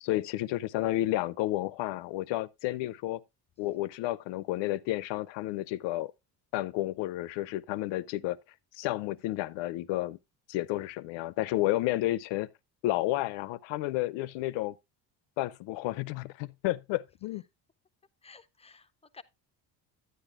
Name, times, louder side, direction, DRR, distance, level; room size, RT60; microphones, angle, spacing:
voice 1, 0.0-3.2 3.6-6.1 6.5-8.4 8.7-10.2 10.5-12.5 12.8-14.8 15.4-17.4, left 16 dB, 85° left, 0.6 m, -31 dB
voice 2, 18.2-19.2, left 5 dB, 15° left, 0.4 m, -53 dB
10.0 x 9.6 x 2.4 m
cardioid pair, 110°, 43 cm